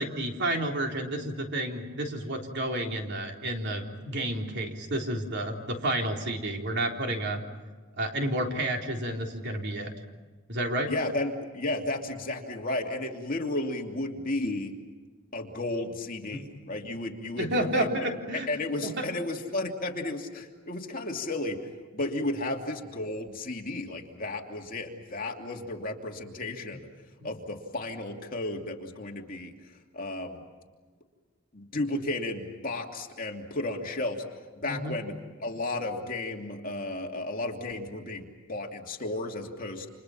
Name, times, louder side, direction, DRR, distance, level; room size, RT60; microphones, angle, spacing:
voice 1, 0.0-7.4 8.0-9.9 10.5-10.9 16.3-16.6 17.4-18.5 18.8-19.1 26.7-26.8 27.2-27.3 34.7-34.9, right 1 dB, 55° right, 2 dB, 3.7 m, -30 dB
voice 2, 10.9-14.7 15.3-26.9 27.2-29.5 29.9-30.5 31.5-34.2 34.6-35.1 35.4-39.9, left 2 dB, 40° left, 1 dB, 2.8 m, -33 dB
30.0 x 27.5 x 5.8 m, 1.4 s
head